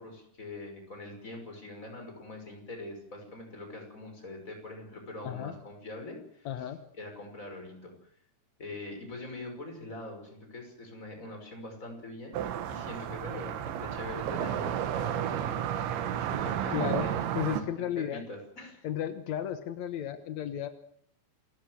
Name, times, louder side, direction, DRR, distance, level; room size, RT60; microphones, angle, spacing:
voice 1, 0.0-6.7 7.0-8.1 8.6-12.4 12.7-17.3 17.7-18.9, left 2 dB, 15° left, 3 dB, 6.0 m, -43 dB
voice 2, 5.2-5.5 6.4-6.8 16.7-17.1 17.3-18.2 18.8-20.7, left 10 dB, 80° left, 10 dB, 1.6 m, -33 dB
sound 1, 12.3-17.6, right 10 dB, 85° right, 3.8 m, -32 dB
28.0 x 15.0 x 8.0 m, 0.65 s
omnidirectional pair, 5.1 m